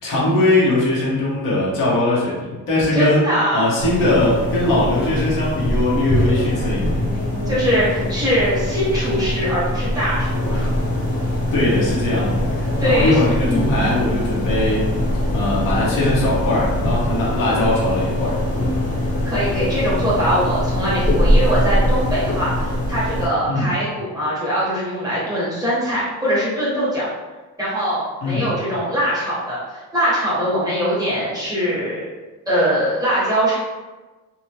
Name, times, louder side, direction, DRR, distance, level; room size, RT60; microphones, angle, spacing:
voice 1, 0.0-3.2 3.5-6.8 11.5-14.9 15.3-18.4 23.5-23.7 28.2-28.5, left 2 dB, 75° left, -6 dB, 1.0 m, -20 dB
voice 2, 2.9-4.1 7.5-10.7 12.8-13.2 13.5-13.7 19.2-27.1 27.6-32.1 32.5-33.6, equal, 10° right, -9 dB, 1.0 m, -22 dB
sound 1, 3.8-23.3, left 1 dB, 25° left, 0.8 m, -22 dB
2.7 x 2.1 x 2.9 m, 1.2 s
cardioid pair, 145°, 33 cm